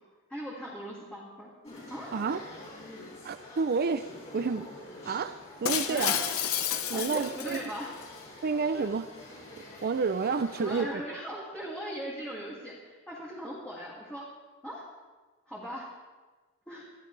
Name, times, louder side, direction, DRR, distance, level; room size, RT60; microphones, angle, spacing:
voice 1, 0.3-1.5 1.9-2.1 5.9-6.2 6.9-7.9 8.7-8.9 10.6-14.2 14.6-14.8 15.5-15.8 16.7-16.9, equal, 5° left, -6 dB, 2.4 m, -39 dB
sound 1, 1.6-10.8, left 1 dB, 30° left, 4.9 m, -47 dB
voice 2, 2.1-2.4 3.2-4.1 4.3-4.7 5.0-5.4 5.6-6.2 6.9-7.6 8.4-9.1 9.8-11.0, right 5 dB, 45° right, 11 dB, 0.4 m, -29 dB
Shatter, 5.6-8.0, left 9 dB, 70° left, 0.9 m, -31 dB
22.0 x 13.5 x 3.3 m, 1.3 s
head